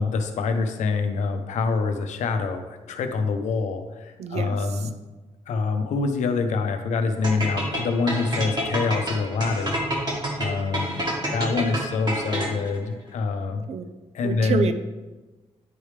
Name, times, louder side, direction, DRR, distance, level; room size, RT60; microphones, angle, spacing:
voice 1, 0.0-4.9 5.5-9.8 10.4-13.7 14.1-14.7, left 4 dB, 85° left, 6 dB, 0.6 m, -26 dB
voice 2, 4.2-4.8 13.7-14.0 14.2-14.7, right 6 dB, 65° right, 9 dB, 0.5 m, -28 dB
sound 1, 7.2-12.8, right 1 dB, 35° right, 1.3 m, -28 dB
9.3 x 3.3 x 3.2 m, 1.2 s
cardioid pair, 125°, 12 cm